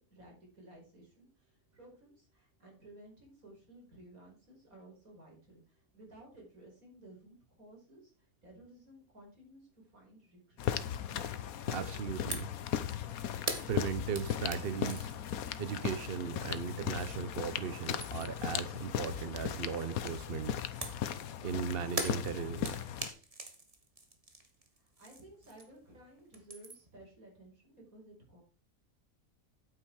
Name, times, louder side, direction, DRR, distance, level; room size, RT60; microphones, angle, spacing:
voice 1, 0.0-11.1 24.8-28.4, right 1 dB, 70° right, -1 dB, 5.6 m, -56 dB
sound 1, 10.6-23.1, left 9 dB, 75° left, 1.3 m, -37 dB
voice 2, 11.7-12.5 13.7-15.1 15.6-20.5 21.4-22.7, right 7 dB, 50° right, 12 dB, 0.9 m, -37 dB
sound 2, 12.3-12.6 12.9-17.3 17.7-18.5 20.8-25.9 26.2-27.0, right 2 dB, 25° right, 1.7 m, -43 dB
9.3 x 8.8 x 4.6 m, 0.35 s
omnidirectional pair, 1.5 m